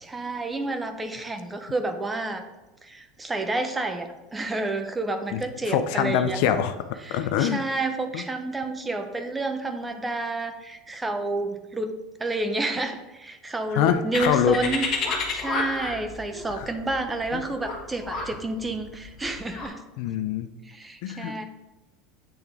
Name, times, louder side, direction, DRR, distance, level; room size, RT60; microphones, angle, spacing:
voice 1, 0.0-2.5 2.8-6.4 7.0-11.9 12.2-19.8 20.7-21.4, right 2 dB, 15° right, 7 dB, 0.6 m, -30 dB
voice 2, 5.7-6.7 7.1-7.6 8.1-8.2 13.7-14.6 16.5-16.7 17.3-17.4 20.0-20.5 21.0-21.4, left 9 dB, 70° left, 9 dB, 0.5 m, -24 dB
sound 1, 14.1-19.7, left 4 dB, 40° left, 1.3 m, -30 dB
8.6 x 3.5 x 3.4 m, 1.1 s
supercardioid pair, 130°, 0 cm